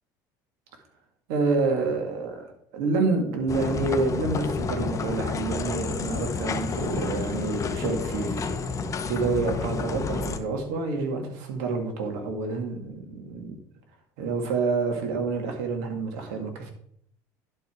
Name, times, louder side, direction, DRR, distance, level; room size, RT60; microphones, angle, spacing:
voice 1, 1.3-8.6 9.0-13.6 14.2-16.7, right 3 dB, 80° right, 4 dB, 1.9 m, -28 dB
sound 1, 3.5-10.4, left 5 dB, 30° left, 0.9 m, -30 dB
10.5 x 4.6 x 4.8 m, 0.67 s
supercardioid pair, 95°, 10 cm